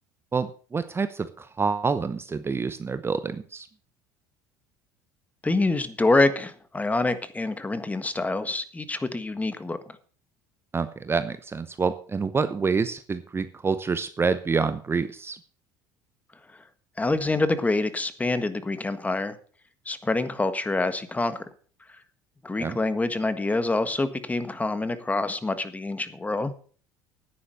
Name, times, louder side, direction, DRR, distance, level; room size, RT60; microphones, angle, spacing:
voice 1, 0.3-3.7 10.7-15.4 22.6-22.8, right 5 dB, 25° right, 12 dB, 0.8 m, -27 dB
voice 2, 5.4-9.8 17.0-19.4 19.8-21.4 22.4-26.5, left 2 dB, 15° left, 12 dB, 1.5 m, -26 dB
10.0 x 9.7 x 6.5 m, 0.43 s
hypercardioid pair, 75°, 10 cm